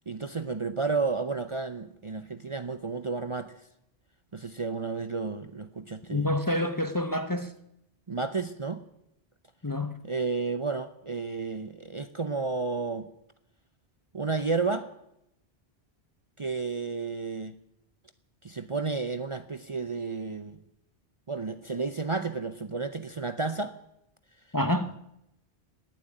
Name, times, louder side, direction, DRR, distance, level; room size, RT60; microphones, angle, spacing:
voice 1, 0.1-3.5 4.3-6.3 8.1-8.8 10.0-13.1 14.1-14.9 16.4-17.5 18.4-20.6 21.3-23.7, right 4 dB, 35° right, 0.7 m, -32 dB
voice 2, 6.1-7.5 9.6-10.0 24.5-24.9, left 1 dB, 20° left, 0.7 m, -28 dB
18.0 x 7.5 x 9.9 m
omnidirectional pair, 1.1 m